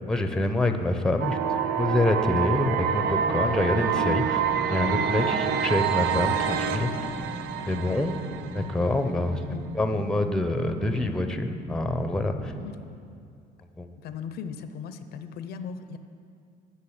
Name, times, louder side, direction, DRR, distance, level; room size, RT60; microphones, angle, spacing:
voice 1, 0.1-1.5 1.8-4.4 4.7-7.1 7.7-8.2 8.5-9.4 9.7-12.5 13.8-13.9, left 1 dB, 5° left, 7 dB, 0.6 m, -26 dB
sound 1, 1.2-9.2, right 8 dB, 80° right, 0.5 m, -27 dB
sound 2, 3.1-12.6, right 1 dB, 20° right, 1.2 m, -39 dB
voice 2, 14.0-16.0, left 6 dB, 70° left, 10 dB, 0.5 m, -38 dB
8.7 x 5.7 x 8.0 m, 2.4 s
cardioid pair, 110°, 17 cm